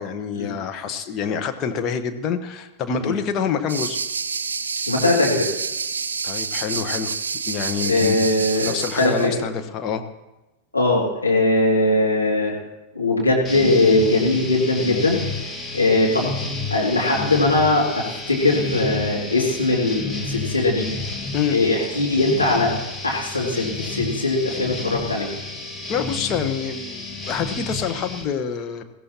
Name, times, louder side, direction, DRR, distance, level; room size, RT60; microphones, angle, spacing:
voice 1, 0.0-4.0 6.2-7.1 7.5-8.2 8.6-10.0 21.3-21.6 25.9-28.8, left 7 dB, 35° left, 6 dB, 1.2 m, -26 dB
sound 1, 3.7-9.3, right 5 dB, 70° right, 0.5 m, -28 dB
voice 2, 4.9-5.5 7.8-9.4 10.7-12.6 12.9-15.4 15.7-16.3 16.7-20.9 21.5-22.7 23.0-25.3, left 2 dB, 85° left, -4 dB, 2.5 m, -20 dB
sound 2, 13.4-28.2, left 3 dB, 15° left, 1.8 m, -31 dB
21.5 x 15.5 x 2.9 m, 1.0 s
figure-of-eight pair, 90°, 0 cm